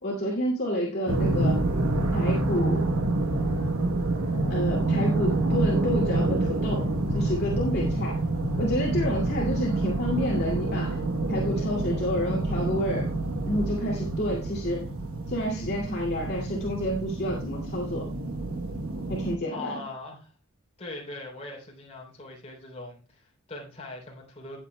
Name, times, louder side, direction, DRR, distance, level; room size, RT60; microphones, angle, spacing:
voice 1, 0.0-1.6 2.1-2.9 4.5-8.2 8.6-11.0 11.3-13.1 13.4-14.9 15.3-18.1 19.1-19.8, equal, 45° left, -4 dB, 2.4 m, -29 dB
sound 1, 1.1-19.4, right 2 dB, 70° right, 1.1 m, -27 dB
voice 2, 19.5-20.3 20.8-24.6, left 2 dB, 30° left, -2 dB, 3.3 m, -41 dB
18.0 x 7.7 x 2.2 m, 0.35 s
head